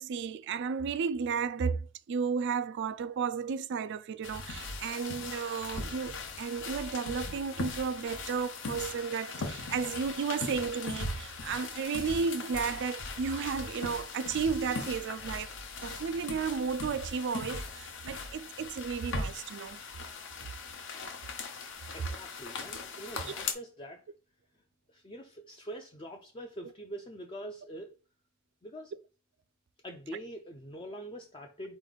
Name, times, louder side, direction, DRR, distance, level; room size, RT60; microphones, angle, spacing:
voice 1, 0.0-15.5 15.8-19.8, right 5 dB, 55° right, 0.3 m, -33 dB
sound 1, 4.2-23.5, left 3 dB, 60° left, 0.8 m, -39 dB
voice 2, 21.9-24.0 24.9-27.9 28.6-28.9 29.8-31.8, right 1 dB, 25° left, 0.5 m, -44 dB
4.4 x 3.0 x 4.0 m
head